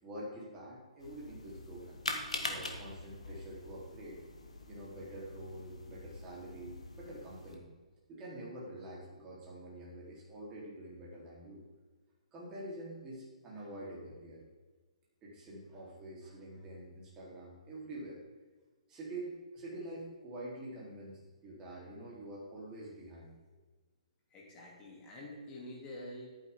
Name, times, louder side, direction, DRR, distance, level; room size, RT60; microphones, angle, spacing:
voice 1, 0.0-2.0 2.4-4.2 4.7-7.6 8.1-11.6 12.3-14.4 15.2-18.2 18.9-23.4, right 1 dB, 20° right, -5 dB, 3.8 m, -46 dB
sound 1, 1.0-7.5, left 2 dB, 75° left, 1.7 m, -43 dB
voice 2, 24.3-26.3, left 1 dB, 20° left, -2 dB, 3.1 m, -47 dB
11.5 x 9.4 x 3.8 m, 1.4 s
figure-of-eight pair, 125°, 4 cm